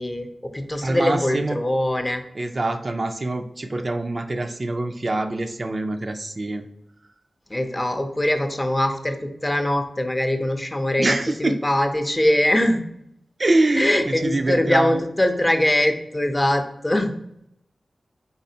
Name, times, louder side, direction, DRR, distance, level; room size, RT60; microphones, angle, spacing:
voice 1, 0.0-2.2 7.5-12.8 13.8-17.1, left 1 dB, 20° left, 6 dB, 0.5 m, -22 dB
voice 2, 0.8-1.6 2.4-6.7 11.0-11.6 13.4-15.0, right 2 dB, 40° right, 6 dB, 0.3 m, -24 dB
4.2 x 4.1 x 2.7 m, 0.76 s
wide cardioid pair, 80°, 0 cm